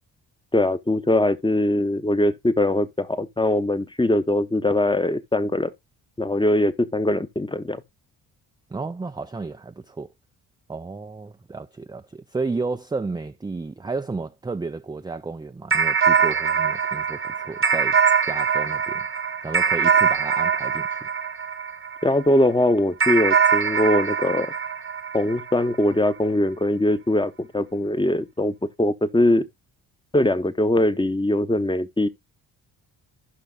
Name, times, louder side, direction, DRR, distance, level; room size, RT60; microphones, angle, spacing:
voice 1, 0.5-5.7 6.2-7.8 22.0-24.5 25.1-29.5 30.1-32.1, left 1 dB, 10° left, 0.9 m, -21 dB
voice 2, 8.7-10.1 10.7-19.1 19.4-21.1, right 3 dB, 10° right, 0.5 m, -32 dB
sound 1, 15.7-22.3 23.0-25.8, right 6 dB, 25° right, 1.1 m, -22 dB
16.0 x 5.7 x 2.3 m
hypercardioid pair, 40°, 50 cm